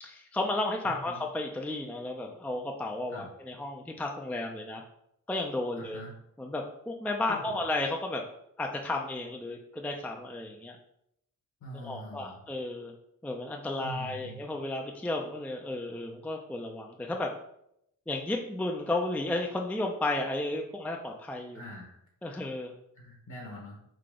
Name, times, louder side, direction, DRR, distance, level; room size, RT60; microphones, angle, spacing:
voice 1, 0.0-4.8 5.3-6.0 6.4-8.2 8.6-10.8 11.8-12.9 13.2-17.3 18.1-21.6 22.2-22.7, left 2 dB, 5° left, 1 dB, 0.4 m, -33 dB
voice 2, 5.8-6.1 7.3-7.6 11.6-12.4 13.8-14.4 21.5-22.0 22.9-23.8, left 1 dB, 65° left, -1 dB, 1.2 m, -43 dB
3.9 x 2.8 x 4.9 m, 0.75 s
wide cardioid pair, 130°, 34 cm